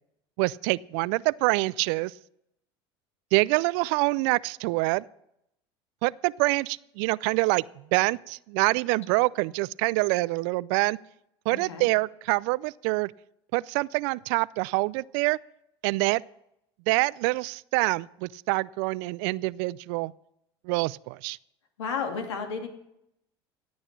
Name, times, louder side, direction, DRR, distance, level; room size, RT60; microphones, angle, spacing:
voice 1, 0.4-2.1 3.3-5.1 6.0-11.0 11.5-13.1 13.5-15.4 15.8-16.2 16.9-20.1 20.6-21.4, right 24 dB, 65° right, 22 dB, 0.4 m, -26 dB
voice 2, 11.5-11.9 21.8-22.7, left 5 dB, 90° left, 4 dB, 2.3 m, -32 dB
15.5 x 8.9 x 5.9 m, 0.80 s
hypercardioid pair, 85°, 14 cm